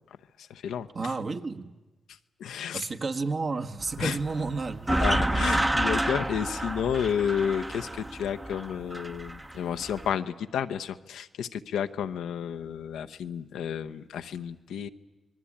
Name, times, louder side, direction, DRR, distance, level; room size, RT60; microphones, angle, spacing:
voice 1, 0.4-0.9 2.4-2.9 4.0-4.2 5.0-14.9, left 8 dB, 85° left, 0.8 m, -31 dB
voice 2, 0.9-1.8 2.7-4.9, right 3 dB, 55° right, 1.5 m, -31 dB
sound 1, 3.8-10.1, right 1 dB, 20° right, 0.8 m, -29 dB
26.5 x 21.0 x 8.7 m
supercardioid pair, 45°, 0 cm